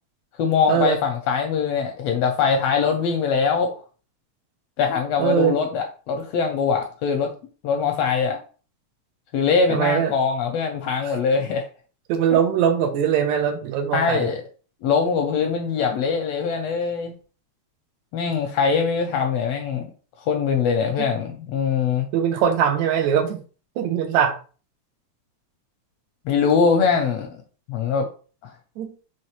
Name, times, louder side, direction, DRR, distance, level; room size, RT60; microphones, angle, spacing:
voice 1, 0.4-3.7 4.8-7.3 7.6-8.4 9.3-11.7 13.9-14.4 14.8-17.1 18.1-19.9 20.3-22.1 26.2-27.3 27.7-28.1, left 6 dB, 80° left, 1.5 m, -22 dB
voice 2, 5.2-5.5 9.7-10.1 11.1-11.2 12.1-14.3 22.1-23.4 23.8-24.4 28.8-28.9, right 8 dB, 80° right, 1.9 m, -21 dB
5.6 x 3.1 x 3.0 m
omnidirectional pair, 3.4 m